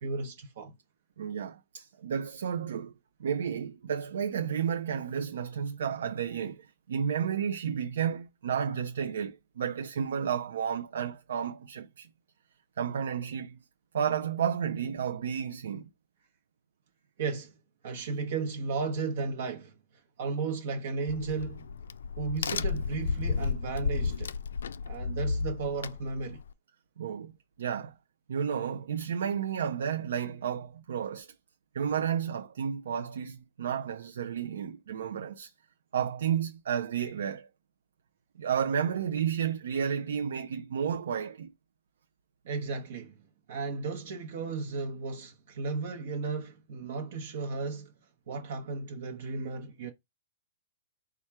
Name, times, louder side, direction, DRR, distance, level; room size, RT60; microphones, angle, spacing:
voice 1, 0.0-0.7 17.2-17.6 17.8-19.7 20.2-21.7 22.2-24.4 24.8-26.4 42.4-43.1 43.5-47.9 48.3-49.9, right 4 dB, 55° right, 0.9 m, -34 dB
voice 2, 1.2-2.9 3.2-12.1 12.8-13.6 13.9-15.9 27.0-27.3 27.6-27.9 28.3-31.3 31.7-35.5 35.9-37.5 38.4-41.5, right 8 dB, 70° right, 0.5 m, -32 dB
Crack, 21.1-26.5, left 5 dB, 85° left, 0.3 m, -33 dB
4.3 x 2.3 x 4.6 m
hypercardioid pair, 165°, 0 cm